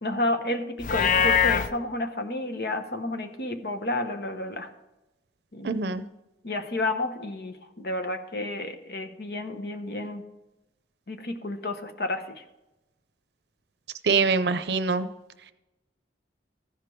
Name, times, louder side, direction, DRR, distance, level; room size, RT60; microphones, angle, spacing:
voice 1, 0.0-4.7 5.5-5.8 6.4-10.2 11.1-12.4, left 2 dB, 65° left, 7 dB, 0.9 m, -31 dB
Livestock farm animals working animals, 0.8-1.7, left 7 dB, 45° left, 0.4 m, -22 dB
voice 2, 5.6-6.0 14.0-15.1, right 4 dB, 70° right, 12 dB, 0.6 m, -24 dB
14.5 x 5.1 x 4.6 m, 0.98 s
head